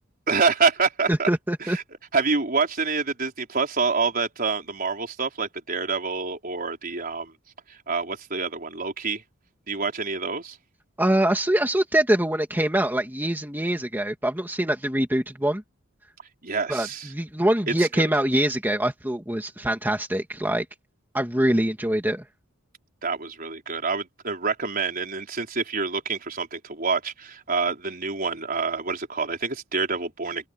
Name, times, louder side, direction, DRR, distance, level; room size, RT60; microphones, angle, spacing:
voice 1, 0.3-1.3 1.6-1.8 2.1-7.3 7.7-9.2 9.7-10.6 16.4-17.1 17.8-18.0 23.0-30.5, right 4 dB, 45° right, 4.5 m, -27 dB
voice 2, 1.1-1.8 11.0-15.6 16.7-20.7 21.1-22.2, right 1 dB, 10° right, 2.3 m, -24 dB
open air
head